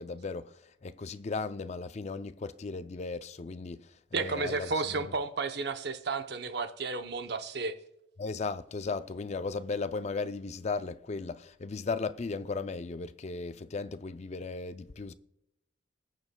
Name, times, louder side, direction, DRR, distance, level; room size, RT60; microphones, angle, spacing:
voice 1, 0.0-5.0 8.2-15.1, left 4 dB, 35° left, 0.4 m, -36 dB
voice 2, 4.1-7.8, right 4 dB, 55° right, 0.7 m, -32 dB
19.5 x 6.9 x 2.2 m
head